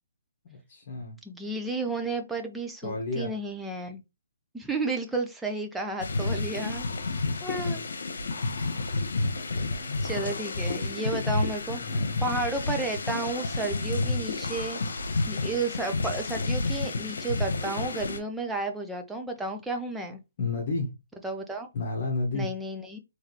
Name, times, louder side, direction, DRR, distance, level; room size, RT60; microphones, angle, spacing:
voice 1, 0.4-1.2 2.8-3.3 7.0-7.2 7.5-7.8 9.2-10.1 11.8-12.2 20.4-20.9 21.7-22.5, left 3 dB, 45° left, 1.3 m, -32 dB
voice 2, 1.2-4.0 4.5-6.9 7.4-7.9 10.0-11.8 12.2-14.8 15.3-20.2 21.2-21.7 22.3-23.0, right 3 dB, 5° right, 0.6 m, -32 dB
sound 1, 6.0-18.2, left 3 dB, 70° left, 1.1 m, -30 dB
3.7 x 3.2 x 3.1 m
hypercardioid pair, 155°, 0 cm